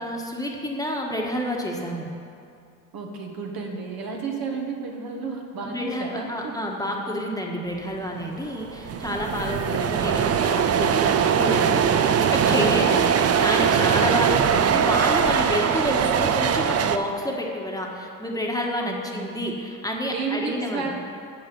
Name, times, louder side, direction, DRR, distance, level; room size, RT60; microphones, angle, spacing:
voice 1, 0.0-2.1 5.6-11.8 12.3-20.8, left 1 dB, 10° left, -1 dB, 1.4 m, -29 dB
voice 2, 2.9-6.8 9.3-9.6 12.5-13.1 18.8-19.3 20.1-20.9, right 4 dB, 60° right, 1 dB, 1.6 m, -32 dB
sound 1, 8.2-8.3 8.5-17.0, right 7 dB, 35° right, 0.6 m, -21 dB
10.0 x 7.0 x 5.4 m, 2.4 s
supercardioid pair, 75°, 40 cm